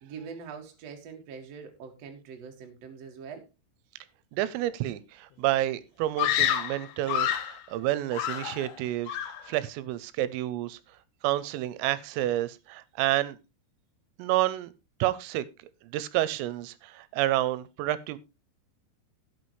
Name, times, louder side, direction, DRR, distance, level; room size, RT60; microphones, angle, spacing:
voice 1, 0.0-3.5, right 6 dB, 55° right, 1.9 m, -43 dB
voice 2, 4.3-9.2 9.5-10.8 11.2-13.4 14.2-14.7 15.0-18.2, right 14 dB, 85° right, 3.3 m, -29 dB
Screaming, 6.2-7.6 8.1-8.8 9.1-9.5, left 10 dB, 75° left, 2.8 m, -28 dB
14.0 x 8.3 x 3.1 m
omnidirectional pair, 5.9 m